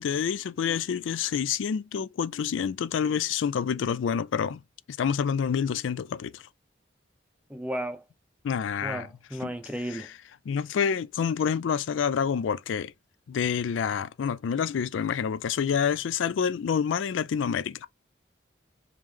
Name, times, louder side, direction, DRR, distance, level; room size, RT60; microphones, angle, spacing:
voice 1, 0.0-4.6 5.0-6.4 8.4-9.1 9.4-9.5 9.9-10.0 10.5-12.9 13.3-17.9, left 7 dB, 80° left, 0.3 m, -28 dB
voice 2, 7.5-8.0 8.8-10.1, right 1 dB, 5° right, 0.5 m, -34 dB
3.6 x 3.1 x 3.2 m
head